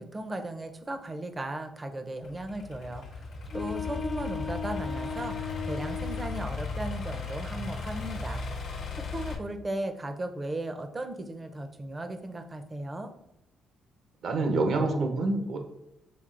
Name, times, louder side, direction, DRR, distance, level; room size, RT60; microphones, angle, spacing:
voice 1, 0.0-3.2 3.5-8.4 9.1-13.1, right 1 dB, 25° right, 7 dB, 0.6 m, -36 dB
Idling / Accelerating revving vroom, 2.2-9.3, left 3 dB, 75° left, 1.0 m, -36 dB
sound 1, 3.5-6.5, left 7 dB, 30° left, 0.3 m, -36 dB
voice 2, 14.2-15.6, right 2 dB, 65° right, 4 dB, 0.8 m, -27 dB
6.0 x 3.6 x 2.5 m, 0.87 s
cardioid pair, 90°, 0 cm